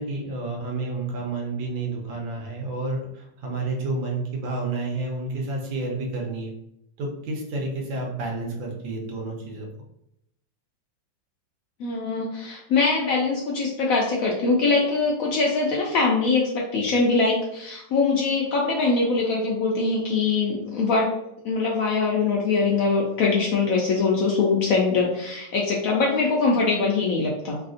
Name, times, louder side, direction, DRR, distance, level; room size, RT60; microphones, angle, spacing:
voice 1, 0.0-6.5 7.0-9.7, right 2 dB, 90° right, 0 dB, 1.5 m, -30 dB
voice 2, 11.8-21.1 21.4-27.6, left 4 dB, 85° left, -2 dB, 0.7 m, -22 dB
3.4 x 2.5 x 2.4 m, 0.80 s
omnidirectional pair, 2.0 m